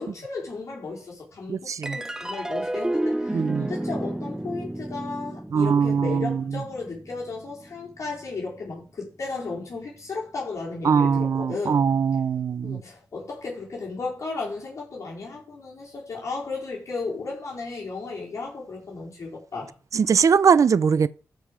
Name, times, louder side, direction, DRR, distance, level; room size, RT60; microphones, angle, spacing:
voice 1, 0.0-11.8 12.6-19.7, left 3 dB, 55° left, 4.3 m, -34 dB
voice 2, 1.5-2.0 3.3-3.7 5.5-6.4 10.8-12.8 19.9-21.1, right 6 dB, 60° right, 0.6 m, -21 dB
sound 1, 1.8-8.5, right 1 dB, 10° right, 0.6 m, -32 dB
13.5 x 5.3 x 5.0 m
cardioid pair, 75°, 6 cm